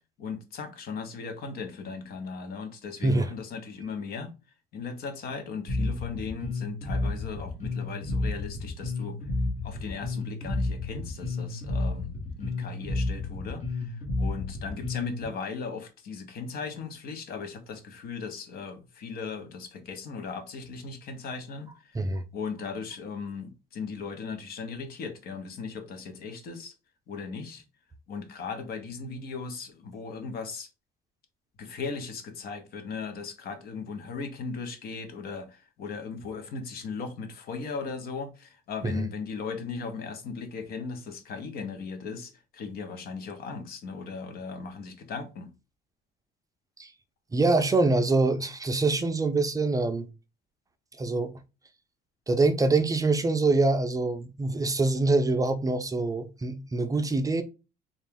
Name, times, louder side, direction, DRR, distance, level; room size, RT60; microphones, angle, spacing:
voice 1, 0.2-4.3 4.7-9.2 9.6-22.0 22.3-26.7 27.1-27.6 28.1-30.7 31.6-45.5, left 5 dB, 65° left, 0.9 m, -37 dB
voice 2, 3.0-3.3 21.9-22.2 38.8-39.1 46.8-46.9 47.3-50.1 51.0-51.3 52.3-57.4, right 3 dB, 20° right, 0.4 m, -25 dB
Bass guitar, 5.7-15.3, left 2 dB, 45° left, 1.5 m, -31 dB
3.9 x 2.4 x 3.6 m
cardioid pair, 110°, 17 cm